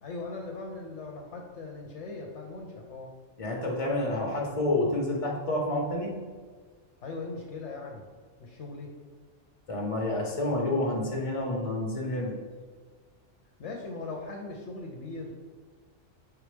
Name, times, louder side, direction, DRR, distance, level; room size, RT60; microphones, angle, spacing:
voice 1, 0.0-3.1 7.0-8.0 8.4-8.9 13.6-15.3, left 3 dB, 65° left, 0 dB, 1.0 m, -39 dB
voice 2, 3.4-6.1 9.7-12.3, left 1 dB, 25° left, -1 dB, 1.2 m, -29 dB
6.1 x 4.8 x 3.3 m, 1.5 s
omnidirectional pair, 1.4 m